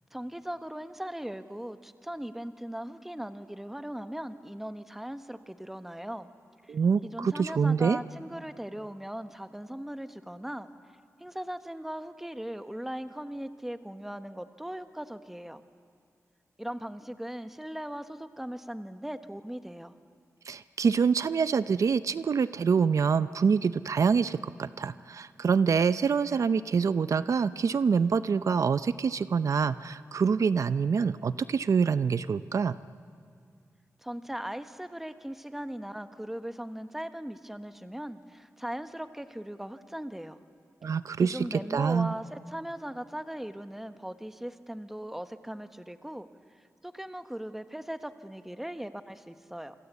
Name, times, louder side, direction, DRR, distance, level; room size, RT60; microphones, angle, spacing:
voice 1, 0.1-6.3 6.6-6.7 7.1-10.7 11.2-15.6 16.6-19.9 34.0-40.4 41.2-46.3 46.8-49.7, equal, 5° right, 9 dB, 1.1 m, -39 dB
voice 2, 6.7-8.0 20.5-32.8 40.8-42.1, right 6 dB, 70° right, 14 dB, 0.6 m, -26 dB
27.5 x 25.0 x 8.2 m, 2.3 s
wide cardioid pair, 120°, 6 cm